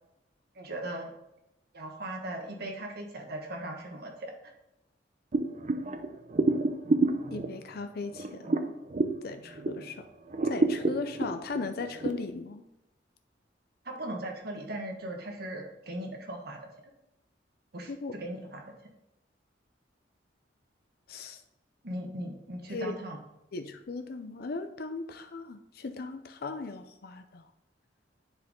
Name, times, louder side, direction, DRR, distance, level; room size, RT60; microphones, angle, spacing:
voice 1, 0.5-1.1 1.7-4.3 13.8-16.7 17.7-18.6 21.8-23.2, right 1 dB, 60° right, 2 dB, 1.5 m, -38 dB
boiling pudding, 5.3-9.9 10.3-12.1, right 2 dB, 40° right, 0.6 m, -29 dB
voice 2, 7.3-8.6 9.2-10.0 10.4-12.6 17.9-18.1 21.1-21.4 22.7-22.9 23.5-27.4, left 3 dB, 55° left, 7 dB, 0.5 m, -37 dB
10.5 x 4.7 x 3.7 m, 0.90 s
head